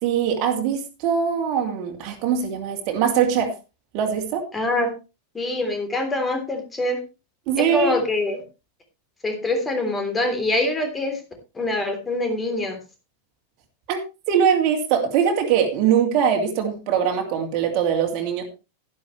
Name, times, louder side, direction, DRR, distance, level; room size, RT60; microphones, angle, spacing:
voice 1, 0.0-3.5 3.9-4.5 7.5-7.9 13.9-14.0 14.3-18.4, right 8 dB, 40° right, 2 dB, 2.7 m, -22 dB
voice 2, 4.5-4.9 5.3-7.0 7.6-8.4 9.2-11.2 11.5-12.8, left 2 dB, 15° left, 5 dB, 3.4 m, -24 dB
11.5 x 11.0 x 3.2 m, 0.29 s
figure-of-eight pair, 90°, 0 cm